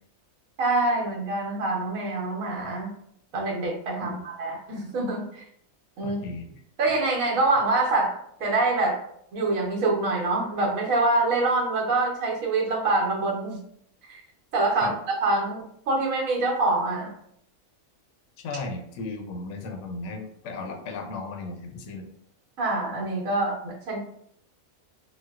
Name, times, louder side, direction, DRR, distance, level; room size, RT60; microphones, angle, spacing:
voice 1, 0.6-2.9 3.3-5.4 6.0-6.2 6.8-9.0 9.3-13.6 14.1-14.2 14.5-14.9 15.2-17.1 22.6-24.0, right 2 dB, 75° right, -1 dB, 1.2 m, -25 dB
voice 2, 6.0-6.6 14.8-15.0 18.4-22.1, left 3 dB, 70° left, 3 dB, 0.8 m, -35 dB
4.3 x 2.0 x 2.3 m, 0.69 s
omnidirectional pair, 1.4 m